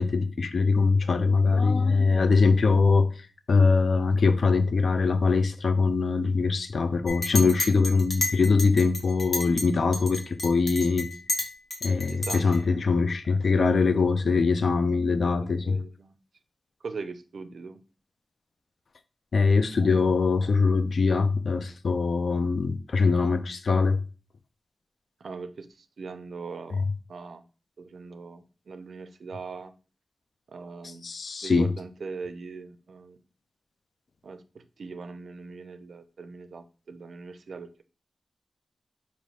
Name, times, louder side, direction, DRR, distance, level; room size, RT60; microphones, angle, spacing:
voice 1, 0.0-3.1 3.5-11.1 11.8-15.8 19.3-24.0 26.7-26.8 31.0-31.7, left 4 dB, 70° left, 0.4 m, -22 dB
Chink clink, 7.1-9.7 9.9-12.6, left 2 dB, 45° left, 1.0 m, -31 dB
voice 2, 12.1-12.8 13.3-13.7 15.3-16.2 16.8-17.8 25.2-27.4 27.8-29.7 30.5-31.1 31.4-33.2 34.2-37.8, right 4 dB, 90° right, 0.4 m, -41 dB
5.3 x 2.6 x 3.3 m
wide cardioid pair, 115°, 0 cm